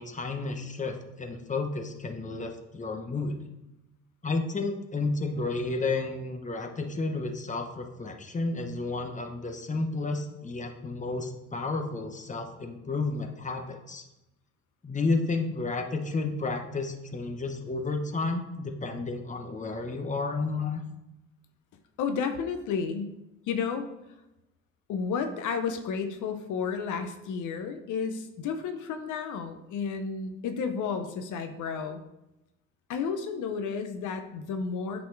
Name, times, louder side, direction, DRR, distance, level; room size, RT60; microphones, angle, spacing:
voice 1, 0.0-3.4 4.2-14.0 14.8-20.8, left 3 dB, 25° left, 4 dB, 1.0 m, -31 dB
voice 2, 22.0-23.2 23.5-23.9 24.9-32.0 32.9-35.1, left 6 dB, 80° left, 7 dB, 0.7 m, -32 dB
8.4 x 4.2 x 4.6 m, 0.93 s
cardioid pair, 90°, 30 cm